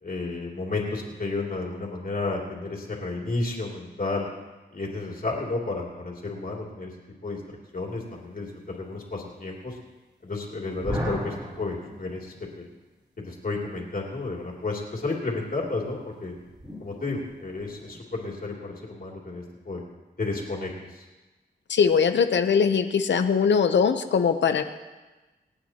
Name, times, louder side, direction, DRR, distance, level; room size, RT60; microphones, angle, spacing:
voice 1, 0.0-4.3 4.7-6.9 7.2-9.7 10.2-12.6 13.2-16.3 16.8-19.8 20.2-21.0, left 3 dB, 55° left, -2 dB, 2.9 m, -32 dB
sound 1, 10.7-12.6 15.6-17.9, equal, 25° right, 4.3 m, -37 dB
voice 2, 21.7-24.6, left 6 dB, 90° left, 8 dB, 0.8 m, -21 dB
27.0 x 9.3 x 3.0 m, 1.2 s
wide cardioid pair, 95°, 18 cm